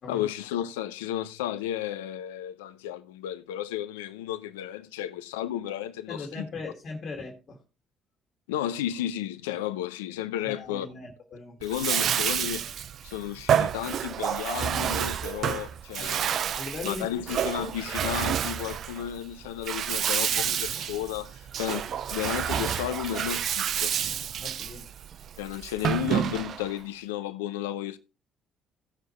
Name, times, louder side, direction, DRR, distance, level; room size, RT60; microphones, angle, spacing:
voice 1, 0.1-6.4 8.5-10.9 11.6-12.6 13.0-16.3 16.8-23.9 25.4-28.0, left 12 dB, 85° left, 0.6 m, -33 dB
voice 2, 6.1-7.6 10.4-11.6 16.0-17.2 18.0-18.1 24.3-24.9, left 3 dB, 50° left, 2.0 m, -39 dB
Bathtub (filling or washing), 11.6-26.8, right 9 dB, 60° right, 0.5 m, -29 dB
16.5 x 6.5 x 3.1 m
hypercardioid pair, 55°, 0 cm